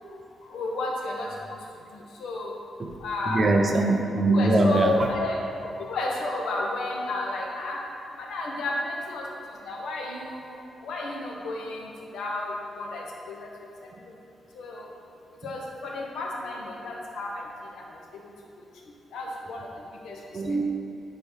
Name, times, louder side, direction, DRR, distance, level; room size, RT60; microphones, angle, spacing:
voice 1, 0.5-1.3 2.2-2.5 3.0-3.5 4.1-5.4 5.9-7.8 8.2-9.2 9.6-10.4 10.8-11.9 12.1-13.4 14.6-14.8 15.4-17.3 19.1-19.7 20.0-20.1, left 2 dB, 85° left, -2 dB, 1.5 m, -31 dB
voice 2, 3.3-5.1 20.3-20.6, right 2 dB, 30° right, 3 dB, 0.8 m, -22 dB
10.5 x 4.8 x 5.7 m, 2.8 s
wide cardioid pair, 160°, 0 cm